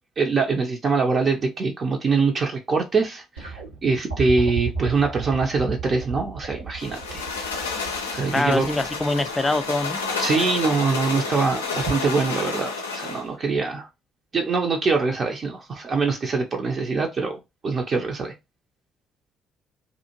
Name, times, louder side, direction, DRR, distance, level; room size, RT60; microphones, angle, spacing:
voice 1, 0.2-7.2 8.1-8.7 10.2-13.9 14.3-17.4 17.6-18.3, right 4 dB, 40° right, 0.5 m, -23 dB
sound 1, 3.4-10.5 11.7-11.8, right 4 dB, 90° right, 1.0 m, -34 dB
sound 2, 6.8-13.3, left 4 dB, 80° left, 0.4 m, -30 dB
voice 2, 8.3-10.0, left 2 dB, 15° left, 0.3 m, -24 dB
2.6 x 2.4 x 2.7 m
figure-of-eight pair, 50°, 0 cm